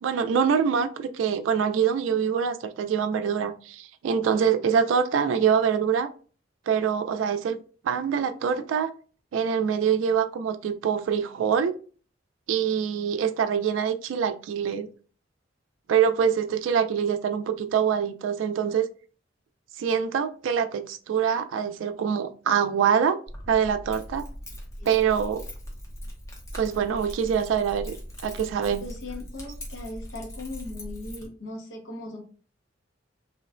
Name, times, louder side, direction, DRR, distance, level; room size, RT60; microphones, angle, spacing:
voice 1, 0.0-6.1 6.7-7.6 7.8-8.9 9.3-11.7 12.5-14.9 15.9-18.9 19.8-23.2 23.5-24.3 24.8-25.4 26.5-27.9 28.2-28.8, right 7 dB, 85° right, 0.3 m, -24 dB
Keys jangling, 23.3-31.3, equal, 15° left, 0.6 m, -40 dB
voice 2, 28.8-32.2, left 2 dB, 80° left, 0.8 m, -38 dB
3.0 x 2.1 x 2.4 m
head